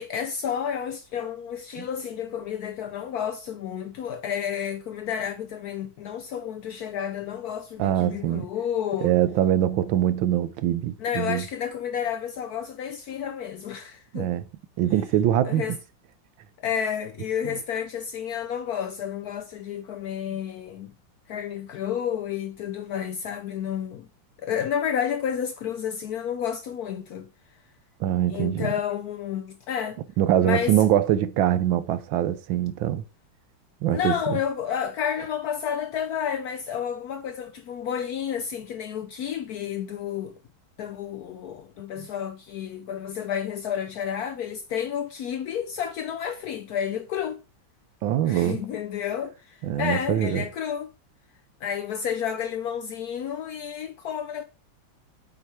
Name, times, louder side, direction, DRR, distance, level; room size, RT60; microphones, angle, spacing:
voice 1, 0.0-9.1 11.0-14.4 15.4-15.8 16.6-20.9 21.3-24.1 24.4-27.3 28.3-30.0 30.4-30.8 33.9-40.3 40.8-47.4 48.3-50.9 51.6-54.4, left 8 dB, 70° left, 0.9 m, -31 dB
voice 2, 7.8-8.5 9.0-11.4 14.1-14.4 14.8-15.8 17.4-17.6 28.0-28.7 30.2-33.0 33.8-34.4 42.0-42.1 48.0-48.6 49.6-50.4, right 11 dB, 80° right, 1.5 m, -23 dB
8.0 x 4.7 x 4.2 m
omnidirectional pair, 2.1 m